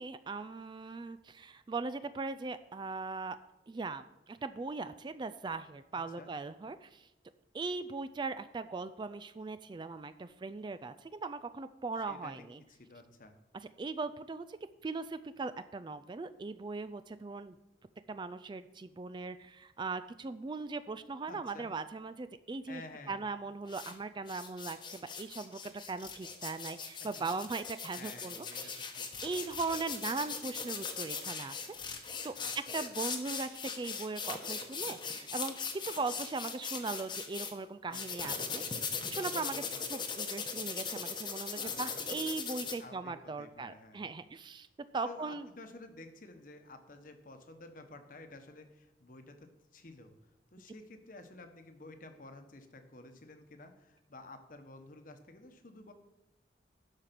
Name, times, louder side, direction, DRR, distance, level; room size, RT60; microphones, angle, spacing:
voice 1, 0.0-3.4 3.7-7.1 7.5-12.6 13.8-14.6 14.8-17.6 18.1-22.8 23.1-28.9 29.2-32.4 32.7-35.5 35.8-38.6 39.1-39.6 39.9-44.7 44.9-45.5, right 3 dB, 25° right, 13 dB, 0.3 m, -39 dB
voice 2, 5.9-6.3 12.1-12.3 12.7-13.3 21.3-21.7 22.7-23.2 27.0-27.2 27.9-29.1 32.4-32.5 34.8-35.0 37.9-38.7 39.2-40.0 41.5-42.4 42.8-44.0 45.0-50.1 50.5-55.9, left 2 dB, 50° left, 7 dB, 1.1 m, -52 dB
sound 1, 23.7-23.9 24.3-37.5 37.9-42.7, left 5 dB, 25° left, 1.0 m, -39 dB
12.0 x 4.9 x 5.9 m, 0.96 s
head